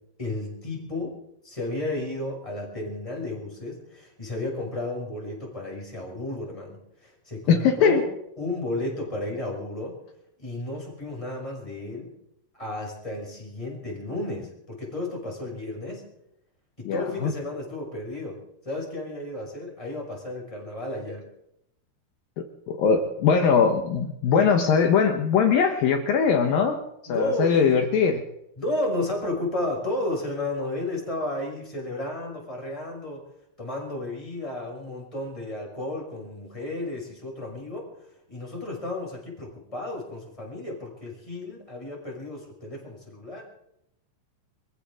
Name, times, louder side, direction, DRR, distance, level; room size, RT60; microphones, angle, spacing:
voice 1, 0.2-1.2 1.4-8.1 8.4-10.0 10.4-12.1 12.5-16.1 16.8-21.3 27.1-27.8 28.6-33.2 33.6-37.9 38.3-43.4, left 2 dB, 5° left, -1 dB, 5.3 m, -33 dB
voice 2, 7.5-8.0 16.9-17.3 22.4-26.8 27.1-28.2, left 6 dB, 70° left, 5 dB, 2.3 m, -21 dB
25.0 x 15.0 x 3.8 m, 0.77 s
omnidirectional pair, 5.3 m